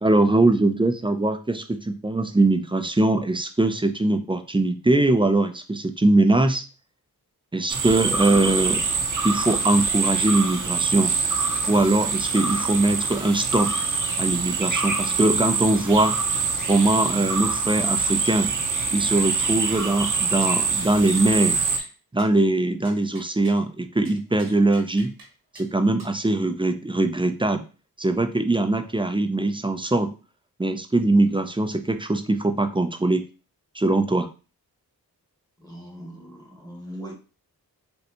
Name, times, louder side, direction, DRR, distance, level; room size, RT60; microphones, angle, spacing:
voice 1, 0.0-6.6 7.5-8.8 9.2-11.1 11.7-13.7 14.2-16.2 16.7-18.5 18.9-21.6 22.1-25.1 25.5-27.6 28.0-30.1 30.6-33.2 33.7-34.3, right 2 dB, 15° right, 7 dB, 0.4 m, -21 dB
sound 1, 7.7-21.8, right 4 dB, 50° right, 0.7 m, -25 dB
sound 2, 20.4-20.6 20.8-20.9 21.2-21.5 21.8-21.9 22.2-22.3 22.8-23.6 24.0-25.3 25.5-25.7 26.0-26.1, right 2 dB, 80° right, 1.2 m, -46 dB
voice 2, 35.6-37.1, equal, 10° left, 0 dB, 1.4 m, -40 dB
4.1 x 2.2 x 2.9 m, 0.34 s
cardioid pair, 45°, 39 cm